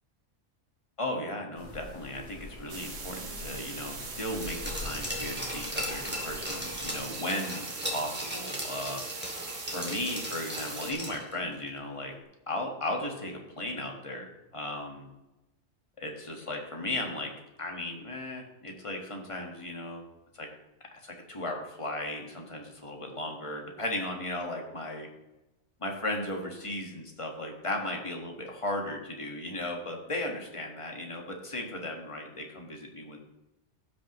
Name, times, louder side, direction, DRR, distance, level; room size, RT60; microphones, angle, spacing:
voice 1, 1.0-9.0 9.7-12.1 12.5-15.1 16.0-17.3 17.6-20.0 20.3-20.5 21.0-25.1 25.8-33.2, left 1 dB, 25° left, 1 dB, 1.5 m, -36 dB
sound 1, 1.5-7.1, left 2 dB, 65° left, 2.4 m, -44 dB
sound 2, 2.7-10.9, right 4 dB, 90° right, 1.6 m, -41 dB
Glass, 4.4-11.4 11.7-11.8, equal, 10° right, 2.2 m, -37 dB
16.5 x 6.2 x 3.0 m, 1.0 s
omnidirectional pair, 1.2 m